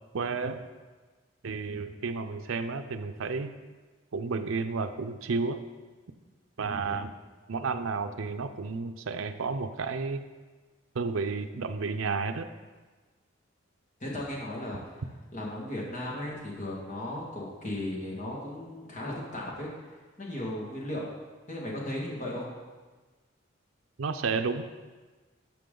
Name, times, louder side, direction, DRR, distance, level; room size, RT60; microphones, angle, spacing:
voice 1, 0.1-0.6 1.4-3.5 4.1-5.6 6.6-7.1 7.5-10.2 10.9-12.5 24.0-24.6, right 4 dB, 80° right, 8 dB, 0.6 m, -31 dB
voice 2, 14.0-15.0 15.3-19.7 20.2-21.2 21.5-22.5, left 1 dB, 40° left, -4 dB, 1.9 m, -36 dB
12.0 x 5.8 x 3.8 m, 1.3 s
head